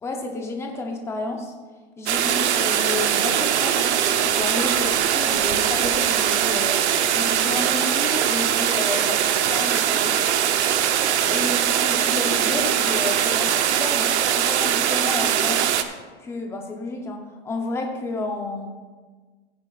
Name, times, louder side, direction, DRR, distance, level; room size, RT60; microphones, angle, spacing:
voice 1, 0.0-1.5 2.0-10.3 11.3-11.5 11.8-15.7 16.2-18.7, left 3 dB, 10° left, 2 dB, 0.8 m, -31 dB
sound 1, 2.1-15.8, right 9 dB, 75° right, 0.9 m, -21 dB
15.5 x 9.6 x 2.5 m, 1.4 s
supercardioid pair, 155°, 34 cm